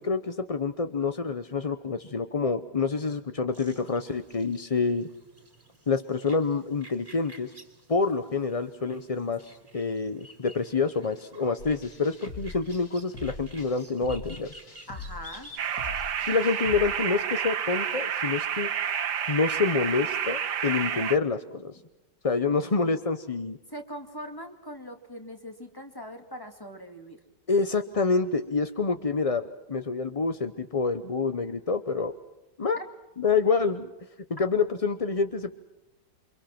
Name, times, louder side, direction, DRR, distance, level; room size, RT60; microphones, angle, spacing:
voice 1, 0.0-5.1 5.9-7.5 7.9-14.5 16.3-18.7 19.3-21.8 22.2-23.6 27.5-32.1 32.6-32.8 33.2-33.9 34.4-35.5, left 4 dB, 35° left, 10 dB, 0.6 m, -27 dB
sound 1, 3.5-16.5, right 1 dB, 10° right, 4.0 m, -52 dB
sound 2, 11.6-16.9, left 3 dB, 60° left, 2.3 m, -42 dB
voice 2, 14.9-15.5 23.7-27.2 32.8-32.9, equal, 10° left, 5 dB, 2.5 m, -41 dB
sound 3, 15.6-21.2, right 8 dB, 70° right, 1.8 m, -29 dB
28.5 x 25.5 x 6.0 m, 0.97 s
omnidirectional pair, 1.9 m